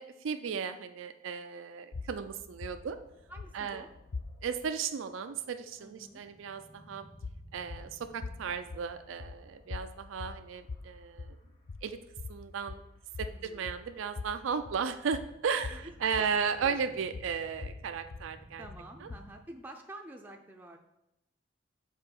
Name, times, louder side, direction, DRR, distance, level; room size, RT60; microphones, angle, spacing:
voice 1, 0.0-3.0 3.5-3.8 4.4-7.1 7.5-11.4 11.8-12.0 12.3-12.8 13.2-18.7 19.0-19.1, right 6 dB, 85° right, 9 dB, 0.4 m, -35 dB
sound 1, 1.9-4.7 7.1-19.5, left 3 dB, 60° left, 0.5 m, -44 dB
sound 2, 2.7-12.2 12.5-19.4, right 1 dB, 25° left, 0.9 m, -59 dB
voice 2, 3.3-3.9 5.8-6.2 13.3-13.7 15.7-15.9 16.6-16.8 18.6-20.8, right 1 dB, 10° right, 2 dB, 0.4 m, -49 dB
5.6 x 4.4 x 5.8 m, 0.89 s
head